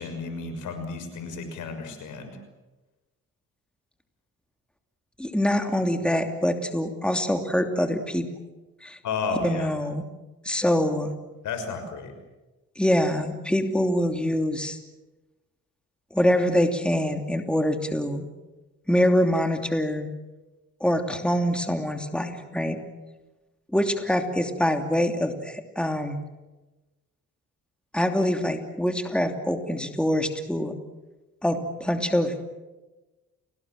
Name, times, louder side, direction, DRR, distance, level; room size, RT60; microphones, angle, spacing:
voice 1, 0.0-2.4 9.0-9.7 11.4-12.1, left 4 dB, 80° left, 8 dB, 6.1 m, -32 dB
voice 2, 5.2-8.3 8.8-9.0 9.4-10.0 10.4-11.1 12.8-14.8 16.1-18.3 18.9-20.1 20.8-22.8 23.7-26.2 27.9-30.7 31.4-32.3, equal, 5° left, 6 dB, 2.9 m, -24 dB
30.0 x 19.5 x 7.7 m, 1.1 s
cardioid pair, 90°, 30 cm